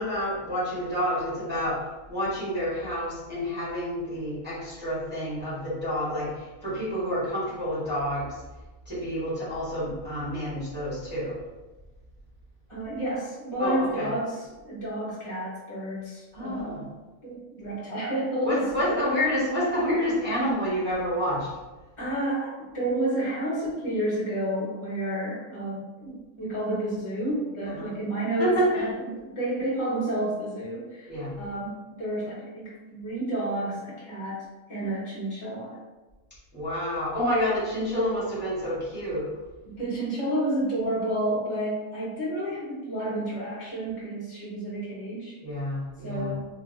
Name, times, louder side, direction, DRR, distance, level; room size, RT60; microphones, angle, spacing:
voice 1, 0.0-1.8 2.1-8.3 8.8-11.4 13.6-14.1 16.3-16.8 18.4-21.5 27.7-27.9 28.4-28.8 31.1-31.3 36.5-39.3 45.4-46.3, equal, 10° right, -10 dB, 1.2 m, -28 dB
voice 2, 12.7-16.9 17.2-19.0 22.0-31.1 31.4-34.4 34.7-35.8 39.6-45.3 46.0-46.6, right 1 dB, 25° left, -7 dB, 1.2 m, -30 dB
3.6 x 2.7 x 2.6 m, 1.2 s
omnidirectional pair, 1.4 m